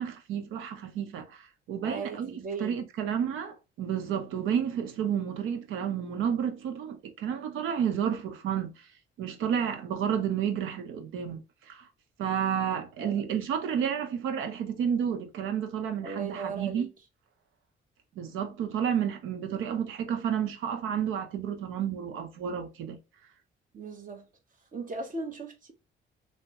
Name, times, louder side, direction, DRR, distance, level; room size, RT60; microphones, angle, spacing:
voice 1, 0.0-2.3 2.6-8.7 9.2-11.9 12.2-16.9 18.2-23.0, right 8 dB, 85° right, 0.8 m, -31 dB
voice 2, 1.8-2.8 13.0-13.2 16.0-16.9 23.7-24.2 24.7-25.7, right 4 dB, 45° right, 1.1 m, -37 dB
3.3 x 2.1 x 2.9 m
cardioid pair, 90°, 20 cm